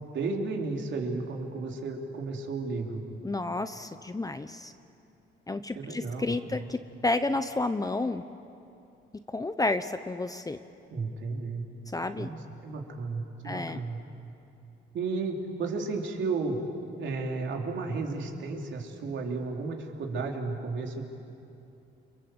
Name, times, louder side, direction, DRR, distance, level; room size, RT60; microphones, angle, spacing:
voice 1, 0.0-3.0 5.7-6.7 10.9-11.6 12.2-14.0 14.9-16.6 17.0-21.0, right 3 dB, 70° right, 1 dB, 3.9 m, -33 dB
voice 2, 3.2-4.7 5.5-8.2 9.3-10.6 11.9-12.3 13.4-13.8, left 2 dB, 20° left, 10 dB, 0.9 m, -31 dB
30.0 x 24.5 x 8.0 m, 2.8 s
cardioid pair, 90°, 20 cm